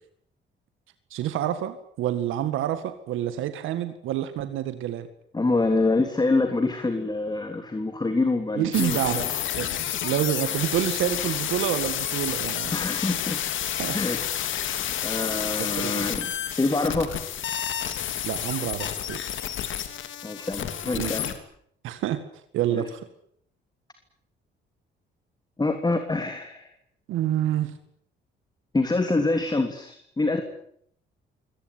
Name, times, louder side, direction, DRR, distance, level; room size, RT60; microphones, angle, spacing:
voice 1, 1.1-5.1 8.6-9.3 9.5-9.7 10.0-12.7 13.8-14.0 15.6-16.1 18.2-19.2 21.0-21.2 21.8-22.2 22.5-23.1 27.1-27.7, right 11 dB, 90° right, 10 dB, 1.9 m, -28 dB
voice 2, 5.3-9.3 12.7-13.4 13.9-14.2 15.0-17.1 20.2-21.3 22.7-22.8 25.6-26.7 28.7-30.4, left 3 dB, 20° left, 7 dB, 3.2 m, -26 dB
sound 1, 8.7-21.4, left 10 dB, 75° left, 3.0 m, -30 dB
24.0 x 18.5 x 9.6 m, 0.67 s
cardioid pair, 90°, 20 cm